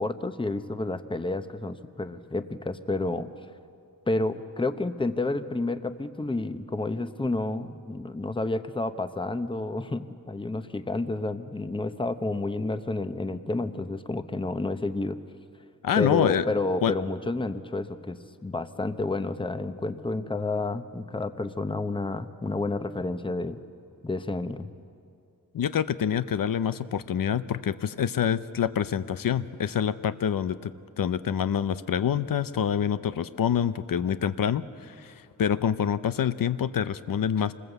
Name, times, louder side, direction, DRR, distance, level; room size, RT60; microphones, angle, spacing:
voice 1, 0.0-3.3 4.1-15.2 16.0-23.6 24.0-24.7, left 2 dB, 15° left, 10 dB, 0.8 m, -30 dB
voice 2, 15.8-16.4 16.8-16.9 25.5-35.1 35.4-37.5, left 8 dB, 80° left, 13 dB, 0.7 m, -26 dB
25.5 x 20.5 x 8.0 m, 2.4 s
wide cardioid pair, 150°, 34 cm